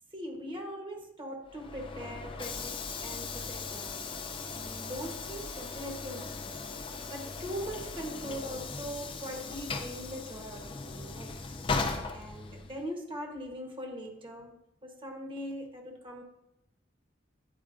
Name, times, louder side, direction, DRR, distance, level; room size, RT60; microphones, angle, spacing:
voice 1, 0.1-6.5 7.1-11.4 12.1-14.5 14.8-16.2, equal, 25° right, 2 dB, 1.0 m, -41 dB
Train / Sliding door, 1.5-12.9, left 4 dB, 25° left, 0.5 m, -38 dB
9.7 x 4.6 x 2.5 m, 0.84 s
head